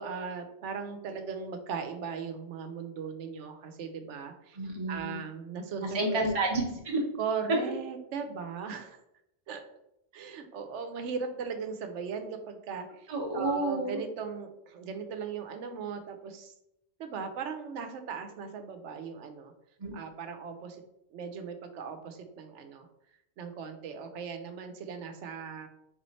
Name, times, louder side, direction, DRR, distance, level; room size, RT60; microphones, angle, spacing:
voice 1, 0.0-4.6 4.9-6.2 7.2-9.0 9.5-9.6 10.1-13.1 13.3-16.5 17.0-19.5 19.9-20.8 21.1-22.9 23.4-25.7, right 6 dB, 80° right, 7 dB, 0.9 m, -38 dB
voice 2, 4.6-5.2 5.8-7.0 13.1-14.0 19.8-19.9, right 2 dB, 35° right, -1 dB, 0.9 m, -30 dB
3.7 x 3.1 x 4.1 m, 0.82 s
omnidirectional pair, 1.2 m